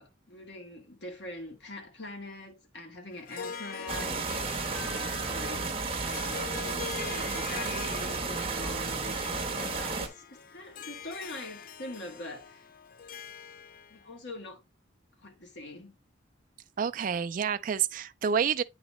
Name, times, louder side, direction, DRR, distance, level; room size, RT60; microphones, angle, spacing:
voice 1, 0.0-4.3 4.6-5.7 6.0-12.7 13.9-14.6 15.2-15.9, left 2 dB, 65° left, 1.6 m, -43 dB
Harp, 3.1-14.0, left 7 dB, 45° left, 0.4 m, -43 dB
sound 1, 3.9-10.1, right 4 dB, 30° right, 1.0 m, -33 dB
voice 2, 16.8-18.6, right 7 dB, 45° right, 0.3 m, -28 dB
8.8 x 4.0 x 3.0 m
head